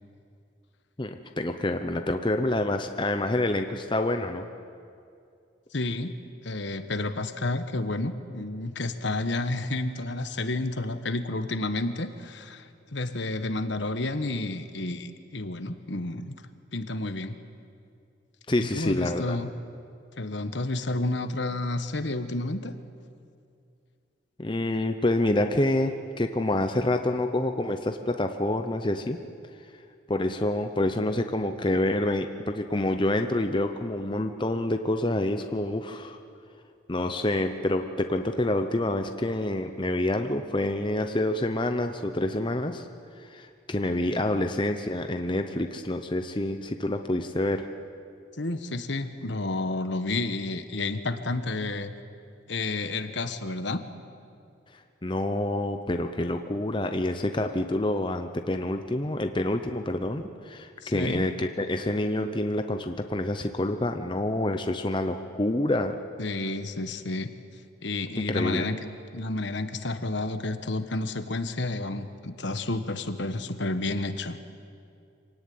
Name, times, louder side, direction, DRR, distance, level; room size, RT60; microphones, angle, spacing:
voice 1, 1.0-4.5 18.5-19.4 24.4-29.2 30.1-36.2 36.9-42.9 43.2-47.7 54.7-66.0 68.3-68.7, left 1 dB, 25° left, 6 dB, 0.8 m, -27 dB
voice 2, 5.7-16.3 16.7-17.4 18.6-19.5 20.2-22.7 48.4-51.9 52.5-53.8 60.8-61.3 66.2-67.3 67.8-68.8 69.1-74.4, left 2 dB, 65° left, 9 dB, 1.3 m, -30 dB
25.5 x 17.0 x 9.5 m, 2.4 s
head